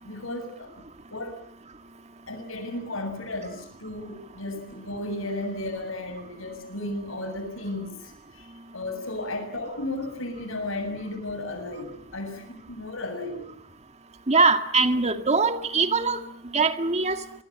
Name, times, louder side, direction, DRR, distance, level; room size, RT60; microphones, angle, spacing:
voice 1, 0.0-0.7 1.1-1.3 2.3-13.4, left 2 dB, 75° left, 6 dB, 7.5 m, -34 dB
voice 2, 14.3-16.2 16.5-17.2, right 4 dB, 35° right, 8 dB, 2.1 m, -22 dB
25.5 x 23.5 x 8.7 m, 0.64 s
head